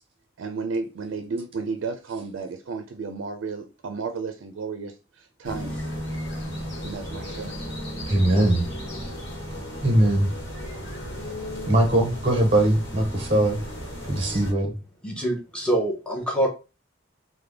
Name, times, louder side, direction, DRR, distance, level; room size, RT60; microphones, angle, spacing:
voice 1, 0.4-5.8 6.8-7.5, right 4 dB, 75° right, 0.4 m, -33 dB
sound 1, 5.4-14.5, equal, 60° left, 1.1 m, -34 dB
voice 2, 8.1-8.6 9.8-10.3 11.7-13.6 14.1-14.7, right 1 dB, 25° right, 0.7 m, -20 dB
voice 3, 15.0-16.5, right 1 dB, 5° left, 0.8 m, -25 dB
3.3 x 2.1 x 3.4 m
head